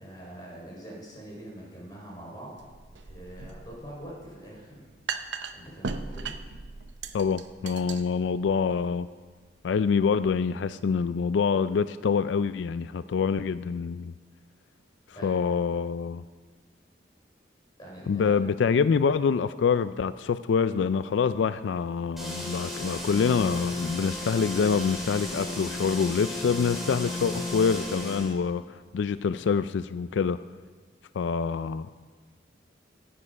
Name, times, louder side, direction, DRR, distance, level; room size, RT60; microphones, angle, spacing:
voice 1, 0.0-2.5 3.0-4.8 5.5-6.3 15.1-15.3 17.8-18.5, right 1 dB, 25° left, -4 dB, 4.7 m, -44 dB
sound 1, 2.6-10.4, right 4 dB, 85° right, 0.7 m, -39 dB
voice 2, 7.1-9.1 9.6-14.1 15.2-16.2 18.1-28.6 28.9-30.4 31.1-31.9, left 6 dB, 90° left, 14 dB, 0.3 m, -26 dB
sound 2, 22.2-28.3, left 1 dB, ahead, 2.9 m, -34 dB
15.5 x 8.6 x 5.5 m, 1.4 s
head